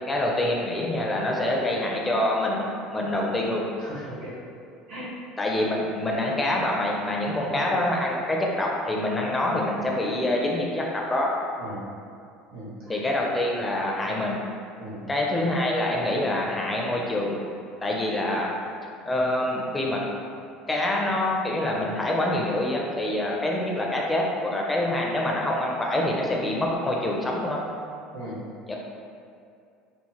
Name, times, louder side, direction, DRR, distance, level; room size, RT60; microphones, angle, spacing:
voice 1, 0.1-3.6 5.4-11.3 12.9-14.4 15.1-17.4 17.8-18.5 19.1-20.0 20.7-27.6 28.7-28.8, left 1 dB, 15° left, -2 dB, 0.4 m, -26 dB
voice 2, 3.8-4.3 4.9-5.1 5.8-5.9 7.4-7.6 9.4-9.6 11.6-11.8 12.5-13.1 14.8-15.1 28.1-28.4, right 1 dB, 80° right, -8 dB, 1.2 m, -39 dB
3.0 x 2.0 x 2.8 m, 2.5 s
supercardioid pair, 125°, 0 cm